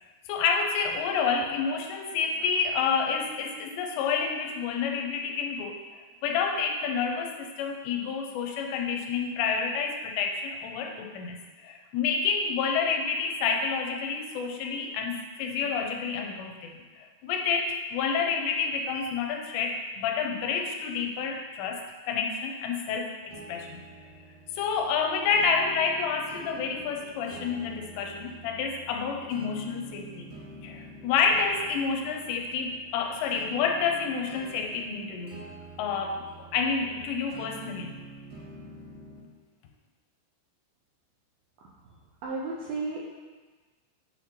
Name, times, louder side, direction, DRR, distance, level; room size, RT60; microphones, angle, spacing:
voice 1, 0.3-11.4 11.6-23.7 24.6-30.4 30.6-35.4 35.8-38.0, left 5 dB, 85° left, 3 dB, 2.7 m, -29 dB
sound 1, 23.3-39.3, right 2 dB, 60° right, 2.8 m, -47 dB
voice 2, 41.8-43.0, right 3 dB, 80° right, -4 dB, 2.2 m, -34 dB
8.6 x 5.9 x 2.9 m, 1.3 s
omnidirectional pair, 5.1 m